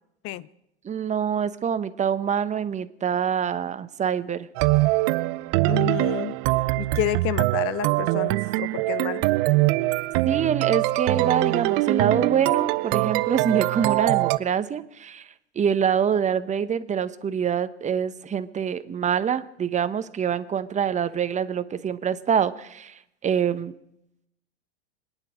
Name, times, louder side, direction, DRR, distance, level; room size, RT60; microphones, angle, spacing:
voice 1, 0.8-4.5 10.2-23.7, right 8 dB, 20° right, 12 dB, 0.9 m, -25 dB
sound 1, 4.5-14.4, right 21 dB, 50° right, 0.5 m, -23 dB
voice 2, 5.6-6.4 6.8-9.2, left 14 dB, 45° left, 18 dB, 0.8 m, -30 dB
25.0 x 10.0 x 5.1 m, 0.81 s
hypercardioid pair, 100°, 33 cm